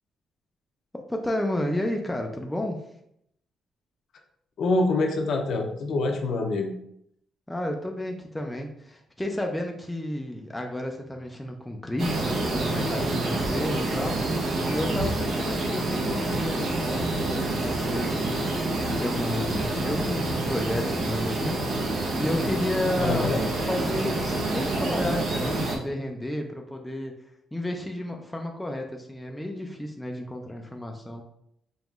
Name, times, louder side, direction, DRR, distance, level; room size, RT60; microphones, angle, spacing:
voice 1, 0.9-2.9 7.5-23.3 23.6-27.1 27.5-31.2, left 1 dB, 5° left, 2 dB, 0.4 m, -32 dB
voice 2, 4.6-6.7 23.0-23.4, left 2 dB, 55° left, 3 dB, 0.6 m, -25 dB
sound 1, 12.0-25.8, right 2 dB, 70° right, 0.9 m, -27 dB
5.3 x 2.9 x 2.4 m, 0.74 s
cardioid pair, 165°, 0 cm